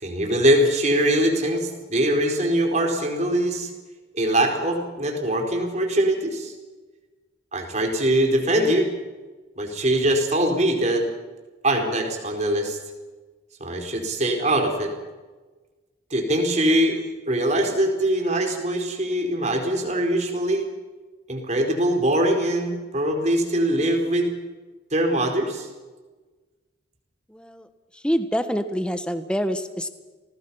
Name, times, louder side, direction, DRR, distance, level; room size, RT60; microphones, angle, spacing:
voice 1, 0.0-3.7 4.1-6.5 7.5-8.9 9.6-11.1 11.6-12.8 13.6-14.9 16.1-20.7 21.3-24.3 24.9-25.7, right 1 dB, 35° right, 3 dB, 4.6 m, -22 dB
voice 2, 27.3-27.7 27.9-29.9, equal, 5° left, 10 dB, 1.3 m, -26 dB
29.0 x 19.5 x 5.7 m, 1.3 s
head